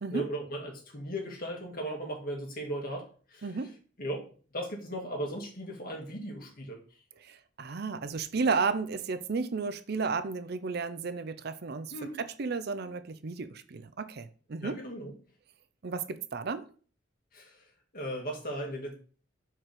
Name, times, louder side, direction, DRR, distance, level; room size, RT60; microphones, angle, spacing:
voice 1, 0.1-3.5 4.0-4.2 4.5-6.8 11.9-12.2 14.6-15.1 17.3-17.6 17.9-18.9, right 1 dB, 50° left, 2.0 m, -37 dB
voice 2, 3.4-3.8 7.2-14.8 15.8-16.7, right 4 dB, 55° right, 0.5 m, -33 dB
4.9 x 4.6 x 5.9 m
head